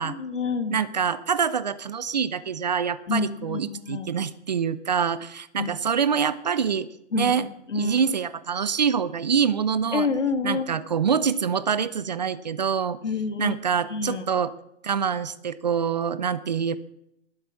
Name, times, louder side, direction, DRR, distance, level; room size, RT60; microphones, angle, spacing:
voice 1, 0.0-0.8 3.1-4.1 5.6-5.7 7.1-8.0 9.9-10.8 13.0-13.6 13.9-14.3, left 4 dB, 85° left, 8 dB, 2.5 m, -28 dB
voice 2, 0.7-6.9 7.1-7.5 7.7-10.1 10.4-13.0 13.4-14.5 14.8-16.8, right 7 dB, 35° right, 16 dB, 0.6 m, -25 dB
20.5 x 8.2 x 7.0 m, 0.80 s
hypercardioid pair, 165°, 36 cm